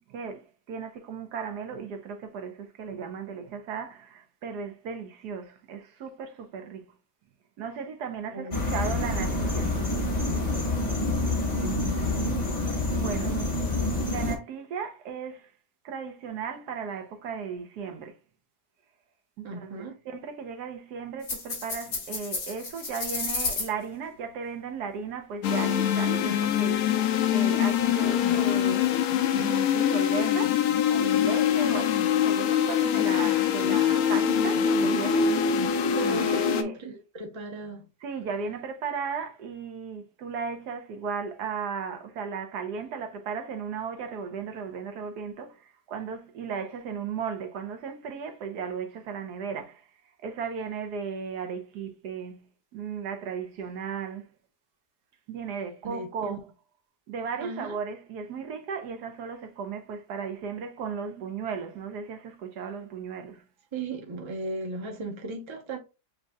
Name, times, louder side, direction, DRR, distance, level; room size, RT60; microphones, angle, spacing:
voice 1, 0.1-6.9 7.6-9.7 13.0-13.3 14.1-15.5 15.8-18.2 19.4-19.7 20.1-35.4 36.1-36.7 38.0-49.9 50.2-52.4 52.7-54.3 55.3-56.5 57.1-63.4, right 6 dB, 75° right, 1.3 m, -36 dB
sound 1, 8.5-14.4, left 2 dB, 30° left, 0.9 m, -27 dB
voice 2, 11.4-12.4 13.1-13.6 19.4-20.0 35.9-37.9 55.8-56.4 57.4-57.8 63.7-65.8, right 2 dB, 25° right, 0.6 m, -37 dB
sound 2, 21.2-23.7, left 4 dB, 90° left, 2.3 m, -32 dB
sound 3, 25.4-36.6, left 9 dB, 70° left, 1.0 m, -24 dB
7.4 x 2.7 x 2.3 m
omnidirectional pair, 1.8 m